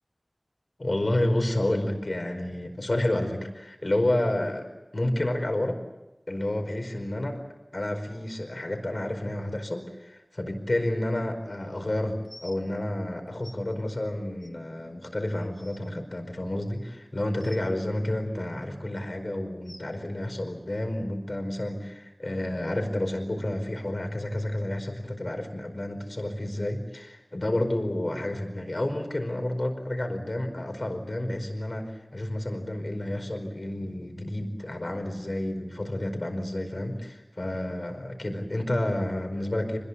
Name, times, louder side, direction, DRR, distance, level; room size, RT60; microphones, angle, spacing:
voice 1, 0.8-4.7 4.9-5.8 6.3-7.4 7.7-39.8, left 1 dB, 70° left, 5 dB, 4.9 m, -30 dB
sound 1, 12.2-12.6 13.4-13.6 14.4-14.5 15.1-15.2 15.4-15.8 17.4-17.6 18.6-18.8 19.6-19.8 21.0-21.1 21.8-21.9 22.6-22.7, left 1 dB, 20° left, 2.3 m, -47 dB
26.5 x 21.0 x 8.4 m, 0.99 s
wide cardioid pair, 40°, 0 cm